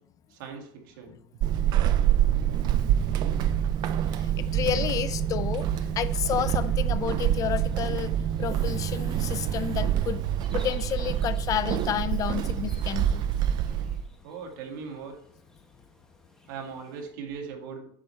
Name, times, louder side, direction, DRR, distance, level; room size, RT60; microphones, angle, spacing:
voice 1, 0.3-1.2 14.2-15.2 16.5-17.8, right 6 dB, 75° right, 2 dB, 2.0 m, -39 dB
Walk footsteps / Squeak, 1.4-14.1, right 10 dB, 40° right, 0.4 m, -26 dB
voice 2, 4.1-5.7 6.0-8.1 8.4-10.2 10.5-13.2, left 10 dB, 30° left, 14 dB, 0.4 m, -30 dB
sound 1, 4.4-17.1, left 1 dB, 5° left, 1.4 m, -53 dB
8.6 x 6.8 x 3.2 m, 0.69 s
supercardioid pair, 140°, 11 cm